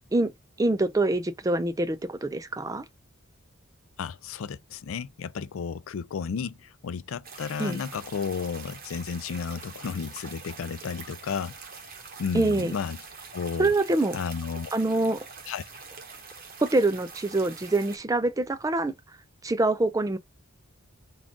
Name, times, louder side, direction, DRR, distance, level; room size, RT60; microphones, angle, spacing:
voice 1, 0.6-2.8 7.6-7.8 12.3-12.7 13.6-14.2 14.7-15.2 16.6-18.9 19.4-20.2, right 2 dB, 15° right, 0.3 m, -25 dB
voice 2, 4.0-11.6 12.2-13.0 13.3-13.7 14.1-14.7 15.5-15.6, left 6 dB, 70° left, 0.4 m, -33 dB
sound 1, 7.2-18.0, right 5 dB, 40° right, 0.8 m, -44 dB
3.7 x 2.4 x 3.6 m
head